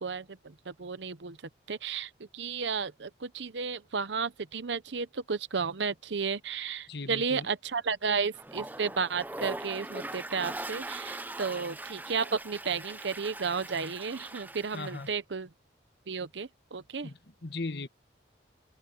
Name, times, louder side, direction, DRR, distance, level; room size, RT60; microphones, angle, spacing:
voice 1, 0.7-1.4 1.7-15.5 16.1-17.1, right 5 dB, 80° right, 0.8 m, -33 dB
voice 2, 6.9-7.5 14.7-15.1 17.0-17.9, left 3 dB, 65° left, 1.3 m, -38 dB
Toilet flush, 8.3-15.1, right 2 dB, 10° right, 0.6 m, -41 dB
head